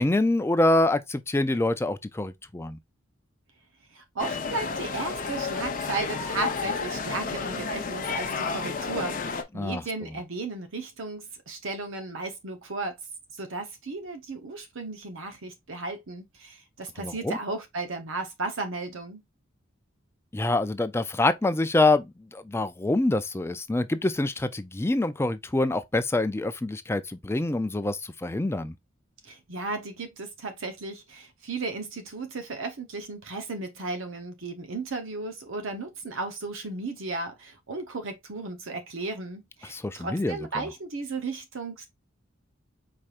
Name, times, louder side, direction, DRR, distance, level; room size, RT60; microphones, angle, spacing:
voice 1, 0.0-2.8 9.6-9.8 17.0-17.4 20.3-28.7 39.7-40.6, left 2 dB, 10° left, 0.4 m, -26 dB
voice 2, 3.9-13.0 13.3-19.2 29.2-41.9, right 3 dB, 65° right, 0.9 m, -35 dB
sound 1, 4.2-9.4, left 5 dB, 40° left, 0.8 m, -31 dB
5.0 x 4.3 x 2.4 m
head